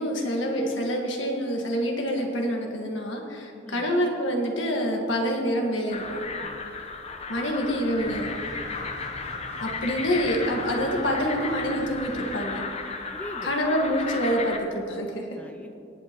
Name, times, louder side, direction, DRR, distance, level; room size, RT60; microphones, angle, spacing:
voice 1, 0.0-6.2 7.3-8.3 9.6-12.6 13.4-15.2, equal, 85° left, 1 dB, 1.7 m, -26 dB
voice 2, 3.6-3.9 6.4-6.6 8.6-8.9 9.7-9.8 13.1-13.6 15.4-15.7, left 1 dB, 10° left, 5 dB, 0.4 m, -43 dB
sound 1, 5.9-14.6, left 4 dB, 35° left, 0.8 m, -34 dB
sound 2, 8.0-12.4, equal, 85° right, 2.3 m, -44 dB
19.5 x 8.6 x 3.0 m, 2.6 s
head